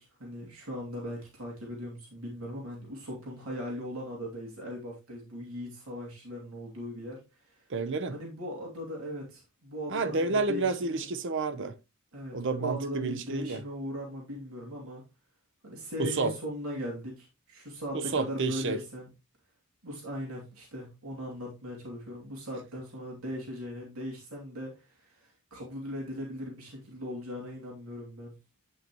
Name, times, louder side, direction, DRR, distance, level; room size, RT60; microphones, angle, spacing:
voice 1, 0.0-7.6 8.1-11.0 12.1-15.0 15.6-19.1 19.8-28.3, equal, 85° right, 2.8 m, -39 dB
voice 2, 7.7-8.2 9.9-11.7 12.3-13.6 16.0-16.3 17.9-18.8, right 3 dB, 60° right, 0.7 m, -30 dB
9.0 x 5.6 x 3.0 m
head